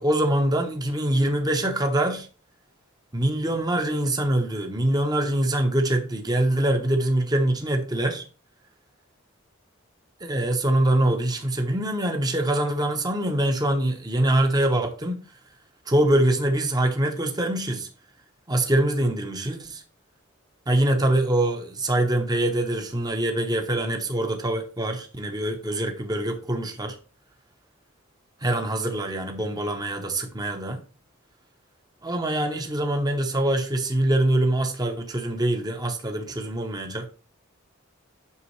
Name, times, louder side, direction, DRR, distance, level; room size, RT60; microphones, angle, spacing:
voice 1, 0.0-2.3 3.1-8.2 10.2-15.3 15.9-17.9 18.5-19.8 20.7-27.0 28.4-30.8 32.0-37.1, right 1 dB, 20° right, 0.9 m, -24 dB
8.3 x 6.1 x 3.2 m
head